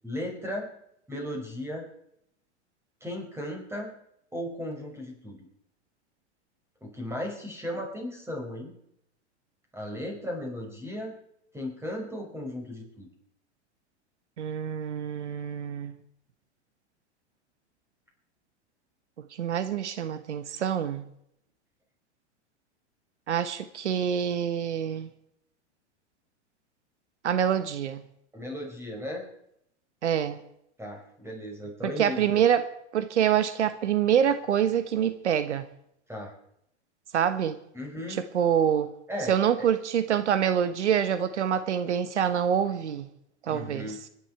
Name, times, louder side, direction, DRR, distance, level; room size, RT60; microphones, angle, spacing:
voice 1, 0.0-0.7 1.1-1.9 3.0-3.9 4.3-5.5 6.8-8.7 9.7-11.1 11.5-13.1 28.3-29.3 30.8-32.4 36.1-36.3 37.7-38.2 39.1-39.7 43.5-44.0, left 1 dB, 5° right, 5.8 m, -36 dB
voice 2, 14.4-15.9 19.4-21.0 23.3-25.1 27.2-28.0 30.0-30.4 32.0-32.7 32.9-35.7 37.1-37.6 38.1-38.9 39.3-43.1 43.4-44.0, right 9 dB, 85° right, 1.2 m, -26 dB
24.5 x 11.0 x 4.7 m
hypercardioid pair, 105°, 34 cm